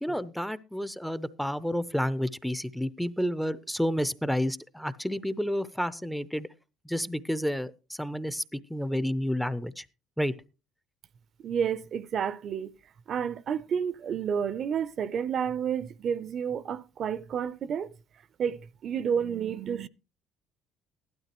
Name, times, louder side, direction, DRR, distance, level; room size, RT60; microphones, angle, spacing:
voice 1, 0.0-6.5 6.9-9.9 10.2-10.3, equal, ahead, 0.5 m, -30 dB
voice 2, 11.4-12.7 13.1-17.9 18.4-19.9, right 7 dB, 50° right, 0.6 m, -30 dB
15.5 x 12.0 x 3.0 m
cardioid pair, 105°, 0 cm